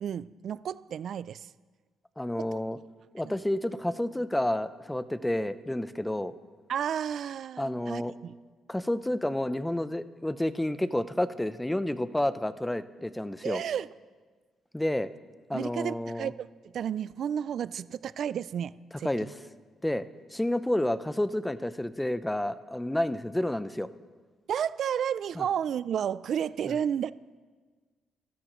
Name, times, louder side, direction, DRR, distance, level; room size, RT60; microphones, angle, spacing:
voice 1, 0.0-1.5 3.2-3.3 6.7-8.3 13.4-13.9 15.5-16.5 16.7-19.3 24.5-27.1, right 8 dB, 65° right, 18 dB, 0.3 m, -32 dB
voice 2, 2.2-2.8 3.1-6.3 7.6-8.1 8.7-13.6 14.7-15.1 15.5-16.3 19.0-19.3 19.8-20.0 20.3-23.9 25.4-25.5 26.7-26.8, left 1 dB, 5° left, 13 dB, 0.6 m, -30 dB
27.0 x 13.0 x 3.1 m, 1.4 s
cardioid pair, 90°, 0 cm